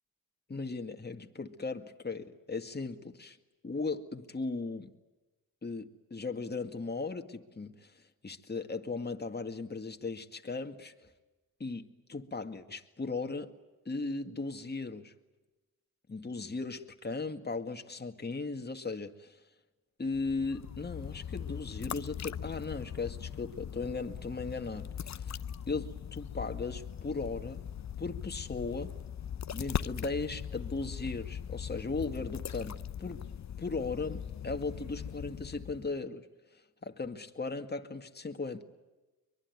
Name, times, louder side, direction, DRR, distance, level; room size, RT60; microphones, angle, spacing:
voice 1, 0.5-3.4 3.6-4.9 5.6-10.9 11.6-13.5 13.9-15.1 16.1-19.4 20.0-25.3 25.7-27.6 28.0-28.9 29.5-33.2 33.6-36.3 36.8-38.6, left 3 dB, 25° left, 2.0 m, -37 dB
sound 1, 20.1-36.0, left 8 dB, 45° left, 0.8 m, -40 dB
24.0 x 21.5 x 9.6 m
supercardioid pair, 60°, 38 cm